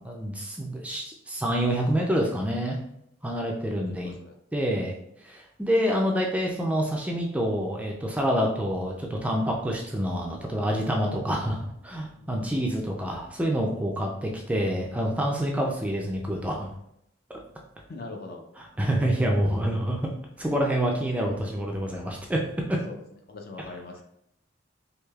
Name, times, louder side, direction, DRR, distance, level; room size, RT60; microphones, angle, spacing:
voice 1, 0.0-2.8 3.2-4.1 4.5-4.9 5.2-16.7 18.6-20.1 20.4-22.4 22.7-22.8 23.6-23.8, equal, 5° right, 0 dB, 0.3 m, -27 dB
voice 2, 3.7-4.3 12.2-12.7 17.9-18.4 22.9-23.0 23.3-24.0, left 3 dB, 50° left, 3 dB, 0.5 m, -41 dB
4.7 x 2.7 x 2.3 m, 0.76 s
head